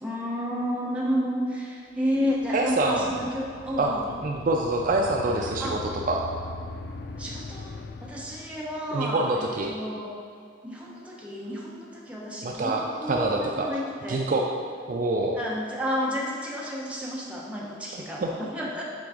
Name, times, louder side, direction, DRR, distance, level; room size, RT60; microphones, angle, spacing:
voice 1, 0.0-4.0 5.6-5.8 7.2-10.1 10.6-14.2 15.3-18.8, equal, 5° right, -5 dB, 0.9 m, -31 dB
sound 1, 2.1-9.0, left 3 dB, 60° left, 0.4 m, -40 dB
voice 2, 2.5-3.1 3.8-3.9 4.2-5.8 6.1-6.2 8.9-9.7 12.4-12.8 13.1-13.7 14.1-14.5 14.9-15.4 17.9-18.3, right 2 dB, 45° right, 1 dB, 0.4 m, -25 dB
5.9 x 3.9 x 4.9 m, 2.3 s
head